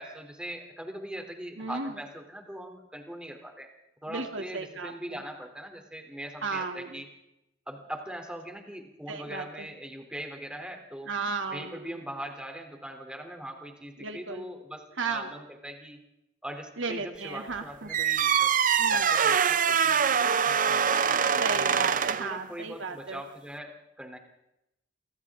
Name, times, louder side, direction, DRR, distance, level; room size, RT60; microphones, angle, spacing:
voice 1, 0.0-3.7 4.0-7.1 7.7-11.1 11.5-16.0 16.4-18.5 18.9-21.4 22.1-24.2, right 1 dB, 5° right, 3 dB, 3.1 m, -41 dB
voice 2, 1.6-2.0 4.1-5.2 6.4-7.0 9.1-9.7 11.1-12.0 14.0-14.4 15.0-15.3 16.8-17.9 18.8-19.1 21.4-23.2, right 4 dB, 85° right, 5 dB, 2.6 m, -35 dB
sound 1, 17.9-22.4, right 7 dB, 45° right, 0.7 m, -24 dB
29.5 x 24.5 x 3.7 m, 0.86 s
head